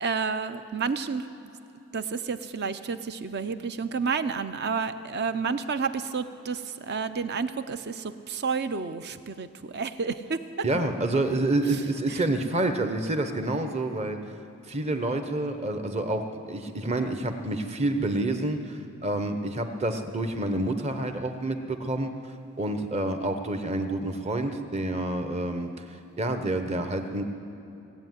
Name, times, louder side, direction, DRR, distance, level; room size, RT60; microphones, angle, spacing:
voice 1, 0.0-1.3 1.9-10.4 11.7-11.8 12.1-12.2, right 5 dB, 50° right, 11 dB, 0.6 m, -30 dB
voice 2, 10.6-14.2 14.7-22.1 22.6-27.2, right 2 dB, 30° right, 7 dB, 1.0 m, -28 dB
17.5 x 8.1 x 9.4 m, 2.9 s
head